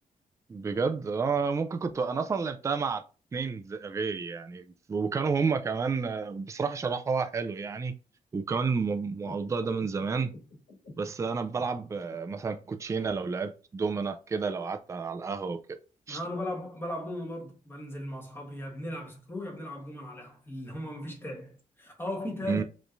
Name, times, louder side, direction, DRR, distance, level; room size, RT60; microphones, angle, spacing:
voice 1, 0.5-3.0 3.3-7.9 8.3-10.3 11.0-15.6 16.1-16.2 22.5-22.6, right 5 dB, 20° right, 0.3 m, -30 dB
sound 1, 9.2-12.2, left 2 dB, 85° left, 1.9 m, -50 dB
voice 2, 16.1-22.6, left 1 dB, 15° left, 1.1 m, -37 dB
5.2 x 3.1 x 2.5 m
wide cardioid pair, 160°, 14 cm